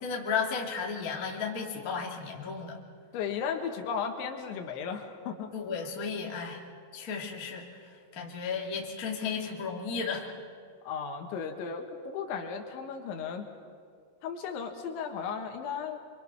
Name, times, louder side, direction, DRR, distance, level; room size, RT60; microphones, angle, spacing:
voice 1, 0.0-2.8 5.5-6.6 6.9-10.3, left 5 dB, 35° left, -1 dB, 1.5 m, -34 dB
voice 2, 3.1-5.5 10.8-13.5 14.2-16.0, left 6 dB, 75° left, 3 dB, 3.9 m, -35 dB
27.5 x 23.5 x 6.0 m, 2.2 s
omnidirectional pair, 5.4 m